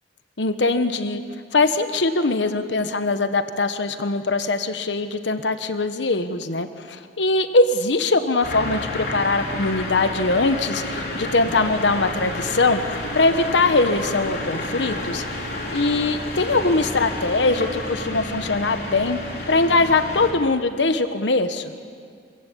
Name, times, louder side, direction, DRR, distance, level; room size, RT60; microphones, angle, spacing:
voice 1, 0.4-1.2 1.5-15.2 15.7-19.2 19.5-21.7, left 3 dB, 90° left, 10 dB, 1.1 m, -21 dB
sound 1, 8.4-20.3, left 1 dB, 60° left, 4.3 m, -30 dB
26.0 x 15.5 x 8.6 m, 2.2 s
head